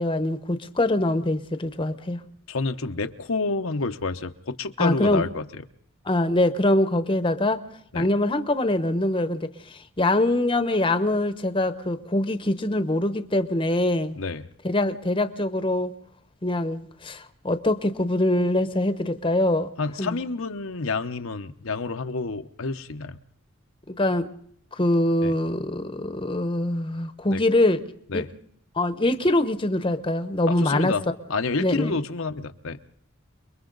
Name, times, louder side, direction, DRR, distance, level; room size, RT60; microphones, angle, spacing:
voice 1, 0.0-2.2 4.8-5.2 6.0-7.6 7.9-14.2 14.6-15.9 16.4-19.7 20.0-20.2 23.9-24.3 24.8-27.8 28.1-28.2 28.8-30.9 31.6-32.0, left 1 dB, 25° left, 10 dB, 1.0 m, -23 dB
voice 2, 2.5-5.5 7.9-8.1 14.1-14.4 19.8-23.2 25.2-25.3 27.3-27.4 28.1-28.3 30.5-31.0 31.3-32.8, left 3 dB, 80° left, 7 dB, 0.9 m, -29 dB
30.0 x 22.0 x 4.0 m, 0.65 s
head